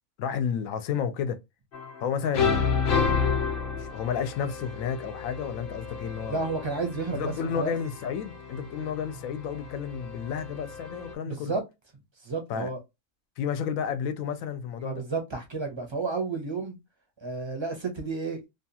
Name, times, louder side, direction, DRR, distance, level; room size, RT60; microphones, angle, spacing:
voice 1, 0.2-1.4 2.0-2.5 2.9-3.1 3.7-6.4 7.1-11.5 12.5-12.7 13.4-15.0, left 7 dB, 80° left, 1.0 m, -31 dB
sound 1, 1.7-2.1 2.3-11.1, left 5 dB, 50° left, 0.8 m, -31 dB
voice 2, 6.3-7.2 7.6-7.7 11.2-11.6 12.2-12.8 14.8-16.8 17.2-18.5, right 4 dB, 30° right, 0.5 m, -31 dB
2.8 x 2.3 x 2.7 m
omnidirectional pair, 1.4 m